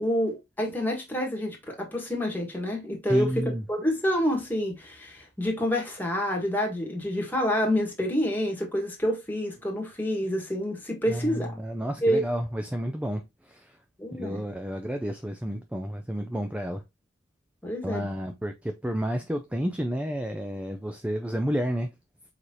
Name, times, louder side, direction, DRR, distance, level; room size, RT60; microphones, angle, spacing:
voice 1, 0.0-11.6 12.0-12.2 14.0-14.4 17.6-18.1, equal, 10° left, 1.5 m, -28 dB
voice 2, 3.1-3.6 11.1-13.7 14.1-16.8 17.8-21.9, equal, 5° right, 0.4 m, -31 dB
4.7 x 4.0 x 2.7 m
head